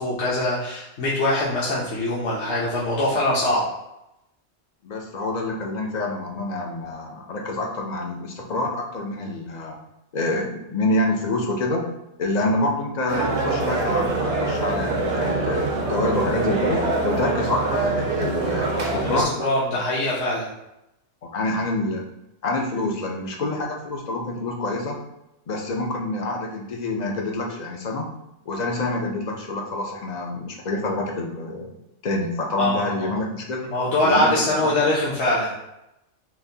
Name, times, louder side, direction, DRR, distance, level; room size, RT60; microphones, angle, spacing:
voice 1, 0.0-3.7 19.0-20.5 32.6-33.2 33.7-35.5, left 1 dB, 65° left, -7 dB, 1.1 m, -23 dB
voice 2, 4.8-9.7 10.1-11.8 12.2-19.3 21.2-22.0 22.4-25.0 25.5-28.1 28.5-31.7 32.0-33.6 34.0-34.3, left 2 dB, 50° left, 1 dB, 0.5 m, -27 dB
sound 1, 13.1-19.2, right 3 dB, 65° right, 1.0 m, -24 dB
5.9 x 2.2 x 2.7 m, 0.88 s
omnidirectional pair, 1.3 m